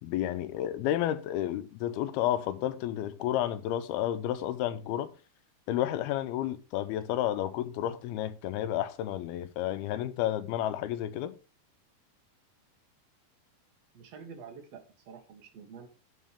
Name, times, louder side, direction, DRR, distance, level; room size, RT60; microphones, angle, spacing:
voice 1, 0.0-5.1 5.7-11.4, left 12 dB, 85° left, 2.6 m, -31 dB
voice 2, 13.9-15.9, right 6 dB, 50° right, 2.4 m, -48 dB
12.0 x 5.1 x 3.6 m
omnidirectional pair, 4.4 m